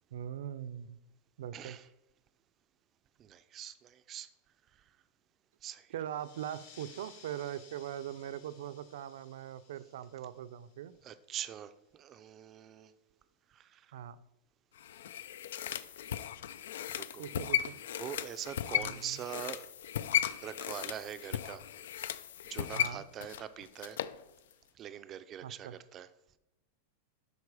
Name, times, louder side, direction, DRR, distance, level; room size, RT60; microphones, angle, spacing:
voice 1, 0.1-1.0 1.4-1.8 5.9-10.9 13.9-14.2 17.2-17.8 18.8-19.2 22.7-23.0 25.4-25.8, right 10 dB, 75° right, 14 dB, 0.5 m, -41 dB
voice 2, 1.5-1.9 3.2-4.3 5.6-5.9 11.0-12.9 13.5-13.9 17.0-17.2 18.0-19.7 20.4-21.6 22.0-22.2 22.5-24.0 24.7-26.1, right 10 dB, 25° right, 12 dB, 0.4 m, -43 dB
sound 1, 6.0-11.2, left 7 dB, 65° left, 3.5 m, -59 dB
sound 2, 14.8-24.2 24.5-24.6, left 11 dB, 85° left, 0.4 m, -36 dB
12.0 x 4.5 x 4.8 m, 0.95 s
supercardioid pair, 170°, 0 cm